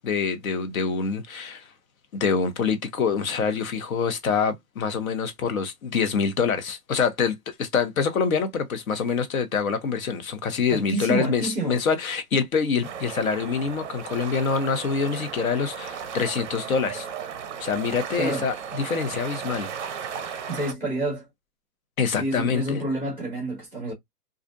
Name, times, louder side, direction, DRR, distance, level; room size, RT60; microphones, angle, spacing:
voice 1, 0.0-1.6 2.1-17.1 17.6-19.7 22.0-22.8, left 5 dB, 60° left, 0.8 m, -25 dB
voice 2, 10.7-11.8 18.1-18.5 20.5-21.2 22.1-23.9, right 2 dB, 5° left, 0.9 m, -28 dB
sound 1, 12.8-20.7, right 7 dB, 50° right, 0.5 m, -35 dB
2.4 x 2.1 x 2.5 m
hypercardioid pair, 150°, 49 cm